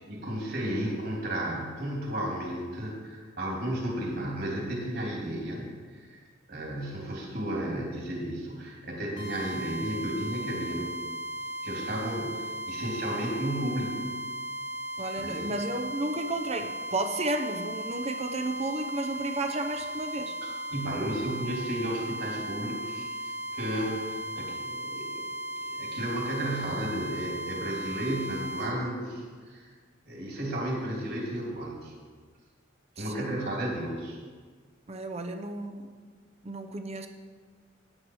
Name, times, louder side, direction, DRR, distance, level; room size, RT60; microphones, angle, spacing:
voice 1, 0.1-6.2 6.5-10.9 11.6-14.2 15.1-15.5 20.4-29.7 30.1-31.9 33.0-34.2, right 1 dB, 55° right, -2 dB, 2.9 m, -33 dB
sound 1, 9.2-28.7, right 1 dB, 85° left, 3.2 m, -37 dB
voice 2, 15.0-20.3 33.0-33.3 34.9-35.8 36.4-37.1, right 2 dB, 30° right, 6 dB, 0.6 m, -32 dB
9.8 x 8.8 x 4.8 m, 1.5 s
head